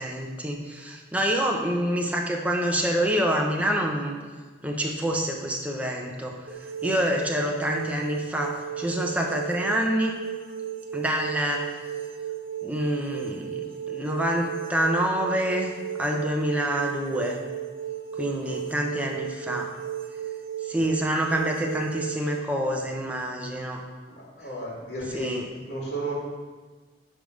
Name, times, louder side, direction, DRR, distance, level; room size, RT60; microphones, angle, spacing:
voice 1, 0.0-4.1 4.6-6.4 6.8-10.2 10.9-11.7 12.6-15.7 16.0-17.4 18.2-19.7 20.6-23.8 25.1-25.5, equal, 10° right, 0 dB, 0.9 m, -27 dB
sound 1, 6.5-22.4, right 9 dB, 55° right, 0.6 m, -35 dB
voice 2, 24.1-25.3 25.7-26.1, right 2 dB, 70° left, -5 dB, 1.9 m, -33 dB
10.0 x 3.6 x 6.4 m, 1.4 s
head